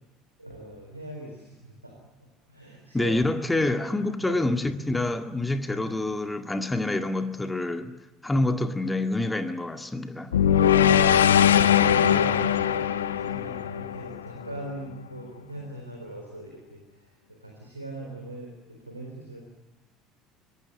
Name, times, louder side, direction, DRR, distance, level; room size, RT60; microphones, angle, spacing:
voice 1, 0.4-1.9 2.5-3.2 3.5-4.5 10.7-11.1 11.5-12.8 13.2-16.8 17.4-19.4, right 1 dB, 90° right, 0 dB, 4.0 m, -40 dB
voice 2, 2.9-7.9 8.2-10.3, left 2 dB, 10° left, 7 dB, 2.0 m, -27 dB
sound 1, 10.3-14.6, left 9 dB, 75° left, 0.9 m, -20 dB
25.0 x 20.0 x 9.7 m, 1.0 s
figure-of-eight pair, 65°, 0 cm